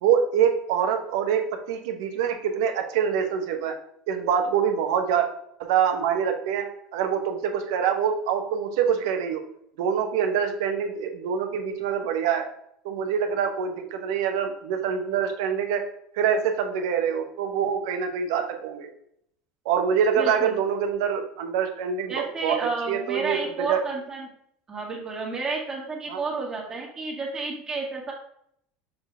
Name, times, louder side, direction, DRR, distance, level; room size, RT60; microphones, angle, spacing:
voice 1, 0.0-3.7 4.1-5.3 5.6-9.4 9.8-12.4 12.8-15.8 16.1-18.9 19.6-23.8 26.1-26.2, right 7 dB, 80° right, 5 dB, 1.0 m, -25 dB
voice 2, 20.2-20.6 22.1-24.3 24.7-28.1, right 3 dB, 25° right, -2 dB, 1.9 m, -31 dB
6.5 x 4.8 x 3.4 m, 0.71 s
supercardioid pair, 110°, 2 cm